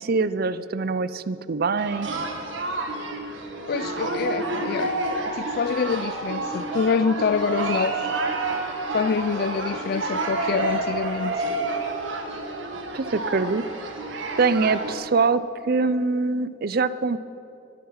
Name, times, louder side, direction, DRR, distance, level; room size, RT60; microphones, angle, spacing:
voice 1, 0.0-2.1 12.9-13.6 14.1-17.2, right 4 dB, 55° right, 0.5 m, -24 dB
sound 1, 1.8-14.9, right 2 dB, 85° right, 1.7 m, -29 dB
voice 2, 3.7-5.0 5.3-8.1 8.9-11.4, left 5 dB, 55° left, 0.4 m, -26 dB
23.0 x 9.5 x 5.7 m
head